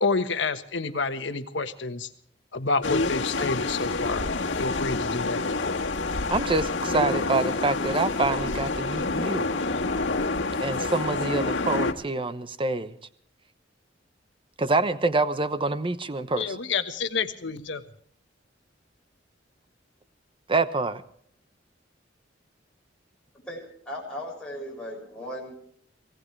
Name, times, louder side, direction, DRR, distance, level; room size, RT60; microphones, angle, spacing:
voice 1, 0.0-2.1 2.5-4.2 4.6-5.8 16.4-17.8, left 4 dB, 70° left, 9 dB, 1.4 m, -29 dB
sound 1, 2.8-11.9, left 3 dB, 85° left, 1.6 m, -28 dB
voice 2, 6.3-9.5 10.6-12.9 14.6-16.6 20.5-21.0, right 3 dB, 30° right, 12 dB, 1.0 m, -26 dB
voice 3, 23.5-25.5, equal, 5° left, -3 dB, 6.9 m, -37 dB
24.5 x 17.5 x 3.3 m, 0.62 s
head